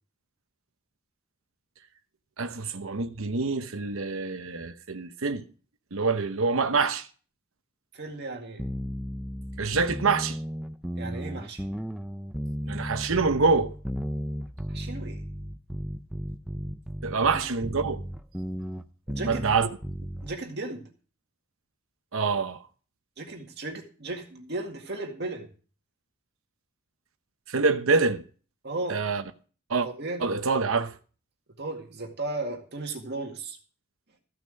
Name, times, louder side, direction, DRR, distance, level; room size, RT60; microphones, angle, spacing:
voice 1, 2.4-5.4 5.9-7.1 9.6-10.4 12.7-13.7 17.0-18.0 19.2-19.7 22.1-22.6 27.5-28.2 28.9-29.2 29.7-29.9 30.2-30.9, right 4 dB, 65° right, 0.9 m, -26 dB
voice 2, 7.9-8.6 11.0-11.6 14.7-15.2 17.1-17.4 19.1-19.7 20.2-20.8 23.2-25.5 28.6-29.0 29.8-30.2 31.6-33.6, right 2 dB, 50° right, 2.1 m, -35 dB
sound 1, 8.6-20.4, equal, 5° right, 0.5 m, -35 dB
14.5 x 6.0 x 6.4 m
head